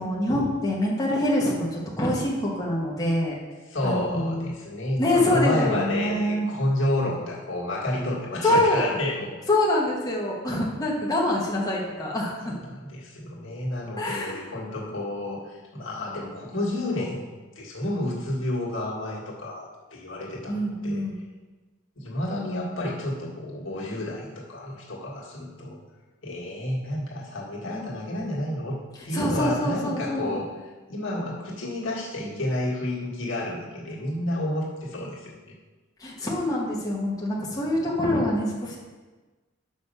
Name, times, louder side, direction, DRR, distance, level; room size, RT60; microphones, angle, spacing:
voice 1, 0.0-3.4 3.8-4.5 5.0-6.5 8.4-8.8 9.5-12.5 14.0-14.4 20.5-21.2 29.1-30.4 36.0-38.8, left 1 dB, 20° left, -4 dB, 1.2 m, -25 dB
voice 2, 3.7-9.3 12.7-17.2 17.5-21.0 22.0-25.8 26.2-28.8 29.0-30.5 30.9-35.3, left 1 dB, 75° left, -4 dB, 1.7 m, -30 dB
6.5 x 5.2 x 5.5 m, 1.3 s
head